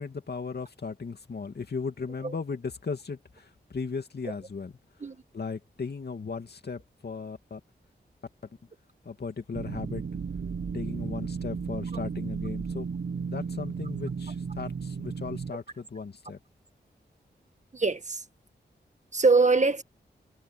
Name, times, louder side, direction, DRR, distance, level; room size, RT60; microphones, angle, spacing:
voice 1, 0.0-4.7 5.3-7.6 9.0-10.0 10.7-12.9 13.3-16.4, left 5 dB, 65° left, 2.5 m, -36 dB
sound 1, 9.5-15.5, right 5 dB, 75° right, 1.1 m, -34 dB
voice 2, 17.7-18.2 19.1-19.8, right 3 dB, 40° right, 1.6 m, -23 dB
wide cardioid pair, 70°, 18 cm